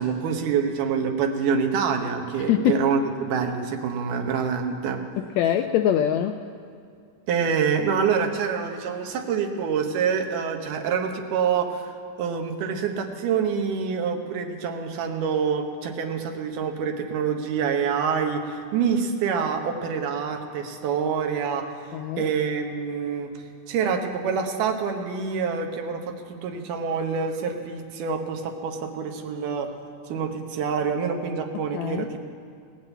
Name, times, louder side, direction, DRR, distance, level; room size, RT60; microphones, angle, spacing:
voice 1, 0.0-5.0 7.3-29.7 30.1-32.2, right 6 dB, 90° right, 3 dB, 2.6 m, -26 dB
voice 2, 2.5-2.9 5.2-6.4 21.9-22.3 31.7-32.1, left 10 dB, 80° left, 7 dB, 1.6 m, -23 dB
17.5 x 7.5 x 8.1 m, 2.4 s
omnidirectional pair, 3.6 m